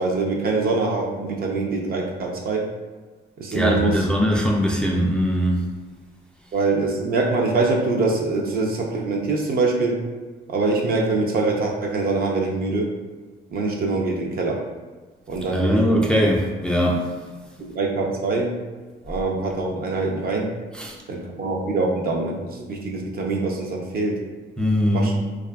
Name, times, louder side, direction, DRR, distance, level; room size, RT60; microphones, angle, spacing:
voice 1, 0.0-2.7 3.4-4.1 6.5-10.0 10.5-12.9 13.5-14.6 15.3-16.1 17.6-18.6 19.0-20.5 21.1-24.2 24.9-25.2, right 3 dB, 50° right, 0 dB, 0.5 m, -24 dB
voice 2, 3.5-5.7 15.5-17.1 20.7-21.0 24.6-25.1, equal, 5° left, -2 dB, 0.3 m, -21 dB
2.6 x 2.4 x 2.2 m, 1.3 s
cardioid pair, 90°, 20 cm